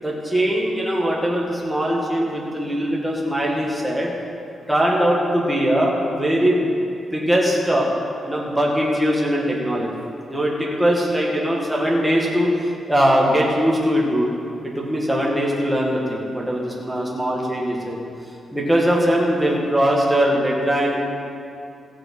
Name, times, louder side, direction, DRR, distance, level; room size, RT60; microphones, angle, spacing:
voice 1, 0.0-4.1 4.7-6.8 7.1-7.9 8.2-9.9 10.3-14.3 14.6-18.0 18.5-20.9, equal, 5° right, -3 dB, 1.9 m, -21 dB
18.0 x 7.1 x 5.5 m, 2.5 s
wide cardioid pair, 175°, 0 cm